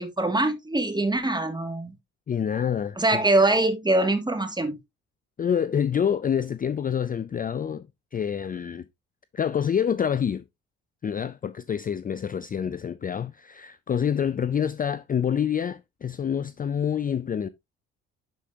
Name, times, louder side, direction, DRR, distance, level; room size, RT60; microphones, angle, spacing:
voice 1, 0.0-1.9 3.0-4.8, right 2 dB, 15° right, 2.1 m, -23 dB
voice 2, 2.3-3.3 5.4-7.9 8.1-8.9 9.3-10.4 11.0-17.5, left 8 dB, 25° left, 0.4 m, -27 dB
11.0 x 5.0 x 2.7 m
supercardioid pair, 60°, 31 cm